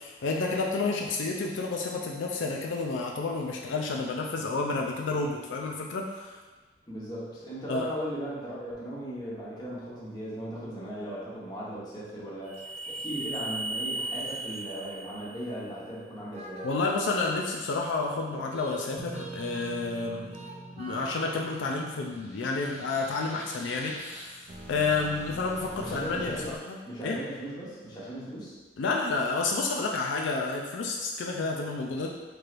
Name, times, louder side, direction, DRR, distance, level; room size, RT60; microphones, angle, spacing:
voice 1, 0.0-6.4 7.7-7.9 16.6-20.4 20.8-24.4 24.7-26.8 27.0-27.2 28.8-32.1, left 3 dB, 80° left, 0 dB, 0.4 m, -30 dB
voice 2, 6.9-12.5 12.9-16.7 25.8-26.5 26.9-28.5, equal, 20° left, -8 dB, 1.0 m, -37 dB
sound 1, 12.4-15.8 16.3-17.4 18.5-26.6, right 2 dB, 35° right, 0.4 m, -40 dB
4.5 x 3.2 x 2.5 m, 1.3 s
head